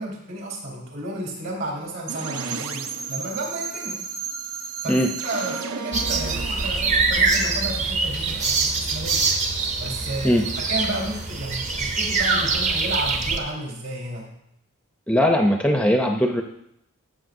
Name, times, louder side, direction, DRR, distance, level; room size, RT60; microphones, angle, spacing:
voice 1, 0.0-4.0 4.8-9.3 9.8-10.3 10.6-14.3, right 1 dB, 65° right, -1 dB, 3.8 m, -32 dB
sound 1, 2.1-7.9, right 6 dB, 85° right, 0.7 m, -34 dB
sound 2, 5.9-13.4, right 4 dB, 35° right, 0.8 m, -24 dB
voice 2, 15.1-16.4, equal, 5° left, 3 dB, 0.5 m, -19 dB
13.5 x 7.6 x 2.6 m, 0.77 s
head